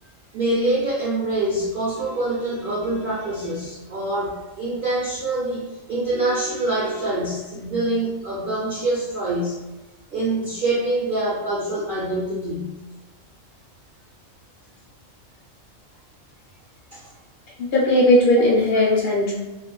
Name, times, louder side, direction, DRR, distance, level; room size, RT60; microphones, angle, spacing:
voice 1, 0.3-5.6 5.9-9.6 10.1-12.7 16.9-17.0, right 2 dB, 60° right, -6 dB, 0.5 m, -25 dB
voice 2, 17.6-19.3, left 1 dB, 60° left, -4 dB, 0.6 m, -17 dB
2.4 x 2.2 x 2.9 m, 1.1 s
omnidirectional pair, 1.4 m